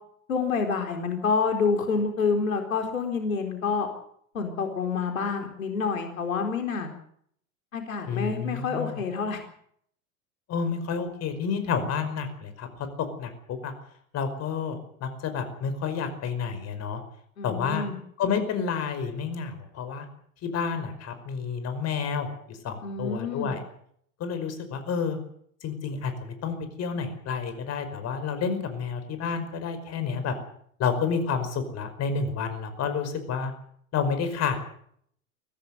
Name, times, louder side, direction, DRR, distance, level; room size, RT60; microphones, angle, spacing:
voice 1, 0.3-3.9 4.3-6.9 7.7-9.4 17.4-18.0 22.8-23.5, left 5 dB, 80° left, 5 dB, 4.2 m, -28 dB
voice 2, 8.1-9.0 10.5-12.7 13.2-13.7 14.1-17.0 17.4-17.9 18.2-20.1 20.4-23.6 24.2-25.2 25.6-30.4 30.8-33.5 33.9-34.6, left 6 dB, 40° left, 10 dB, 5.3 m, -30 dB
23.5 x 16.0 x 8.0 m, 0.66 s
hypercardioid pair, 90°, 41 cm